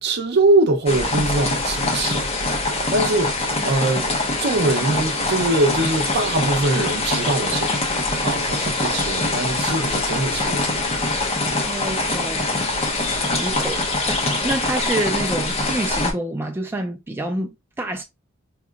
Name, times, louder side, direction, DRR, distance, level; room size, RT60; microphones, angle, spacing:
voice 1, 0.0-2.3 2.9-4.1 4.4-7.8 8.2-11.0, right 2 dB, 50° right, 0.7 m, -22 dB
sound 1, 0.9-16.1, left 2 dB, 30° left, 0.8 m, -23 dB
voice 2, 11.6-12.7 13.4-18.0, right 2 dB, 10° right, 0.3 m, -28 dB
4.8 x 2.9 x 2.3 m
head